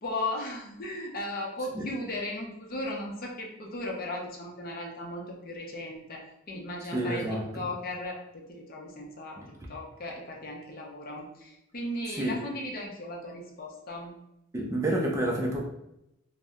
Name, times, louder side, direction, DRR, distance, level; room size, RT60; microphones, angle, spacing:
voice 1, 0.0-7.3 7.5-9.4 9.7-14.1, left 1 dB, 45° left, -1 dB, 0.6 m, -36 dB
voice 2, 6.9-7.6 9.4-9.5 12.2-12.4 14.5-15.6, right 1 dB, 15° right, -1 dB, 0.4 m, -29 dB
2.6 x 2.1 x 3.4 m, 0.86 s
head